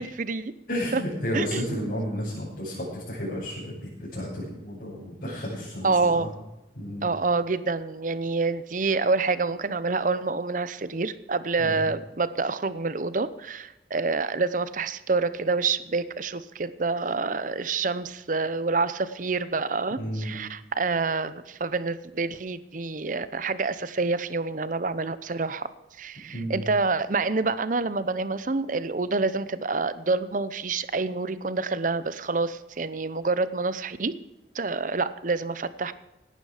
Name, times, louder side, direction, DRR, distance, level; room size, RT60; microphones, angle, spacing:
voice 1, 0.0-0.5 0.9-1.0 1.3-1.9 5.8-6.3 7.0-25.7 26.0-34.1 34.5-35.9, right 3 dB, 45° right, 15 dB, 0.8 m, -27 dB
voice 2, 0.7-6.3 6.8-7.1 11.6-11.9 20.0-20.3 26.3-26.6, equal, 55° left, -10 dB, 7.0 m, -32 dB
17.0 x 12.0 x 5.0 m, 0.99 s
head